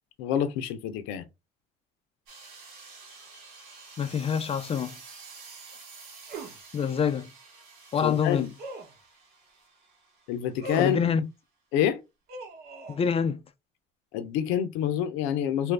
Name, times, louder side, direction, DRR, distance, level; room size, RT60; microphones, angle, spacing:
voice 1, 0.2-1.2 8.0-8.5 10.3-11.0 11.7-12.0 14.1-15.7, left 10 dB, 80° left, 0.6 m, -27 dB
sound 1, 2.3-10.9, right 4 dB, 75° right, 1.4 m, -49 dB
voice 2, 4.0-5.0 6.7-7.3 7.9-8.5 10.8-11.3 12.9-13.4, left 7 dB, 30° left, 0.4 m, -26 dB
sound 2, 6.3-6.6 8.6-9.0 10.6-11.0 12.3-13.0, right 2 dB, 55° right, 1.1 m, -39 dB
2.7 x 2.5 x 3.3 m
supercardioid pair, 85°, 20 cm